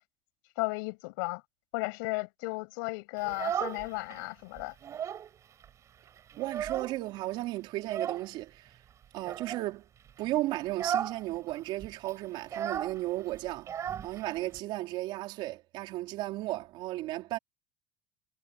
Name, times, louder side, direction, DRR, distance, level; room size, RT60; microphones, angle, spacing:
voice 1, 0.6-1.4 1.7-4.7, left 28 dB, 80° left, 7.7 m, -34 dB
Child speech kid speaking, 3.2-4.2 4.6-5.3 5.6-5.7 6.1-7.2 7.8-8.3 9.2-9.7 10.1-10.3 10.7-11.2 11.5-11.6 11.8-14.6, right 9 dB, 25° right, 7.9 m, -35 dB
voice 2, 6.4-8.8 9.1-9.8 10.2-13.7 14.0-17.4, right 17 dB, 50° right, 4.2 m, -34 dB
cardioid pair, 175°, 11 cm